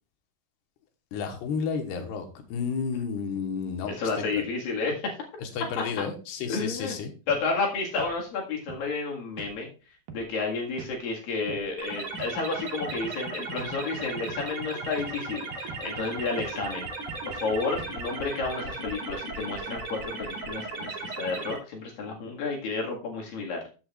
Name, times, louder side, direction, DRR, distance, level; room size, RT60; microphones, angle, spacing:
voice 1, 1.1-3.9 4.2-4.4 5.4-7.1, left 6 dB, 85° left, 5 dB, 3.3 m, -32 dB
voice 2, 3.9-5.2 6.5-7.0 7.3-9.7 10.1-16.9 17.2-23.6, left 4 dB, 65° left, 0 dB, 3.4 m, -31 dB
sound 1, 7.3-7.5 8.0-8.2 8.7-8.9 9.4-9.6 10.1-10.3 10.8-10.9 11.5-11.7 12.2-12.4 12.9-13.0 13.6-13.7 14.3-14.5 15.0-15.2 15.7-15.9 16.4-16.6 17.1-17.3 17.8-18.0, right 6 dB, 70° right, 2.8 m, -43 dB
sound 2, 11.8-21.6, right 3 dB, 45° right, 3.2 m, -36 dB
14.0 x 7.8 x 2.4 m, 0.34 s
omnidirectional pair, 4.6 m